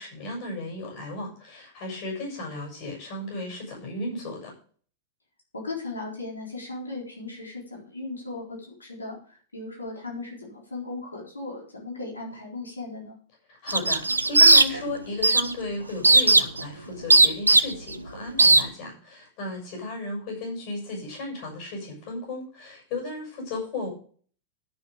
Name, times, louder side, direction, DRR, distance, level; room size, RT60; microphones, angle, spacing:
voice 1, 0.0-4.5 13.5-23.9, left 2 dB, 45° left, 0 dB, 6.5 m, -35 dB
voice 2, 5.5-13.2, left 3 dB, 80° left, -3 dB, 4.0 m, -37 dB
sound 1, 13.7-14.9 15.2-15.5 16.0-16.6 17.1-17.9 18.4-18.6, right 2 dB, 80° right, 0.6 m, -16 dB
12.0 x 7.0 x 5.0 m, 0.44 s
figure-of-eight pair, 90°, 0 cm